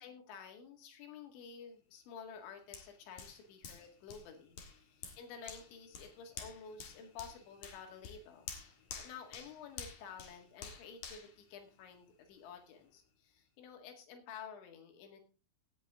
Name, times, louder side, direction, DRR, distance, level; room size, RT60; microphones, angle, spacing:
voice 1, 0.0-8.5 9.0-15.2, left 6 dB, 80° left, 4 dB, 4.3 m, -51 dB
Hands, 2.7-12.3 12.7-12.9, left 6 dB, 55° left, 2.5 m, -51 dB
17.0 x 8.4 x 3.6 m, 0.32 s
omnidirectional pair, 5.2 m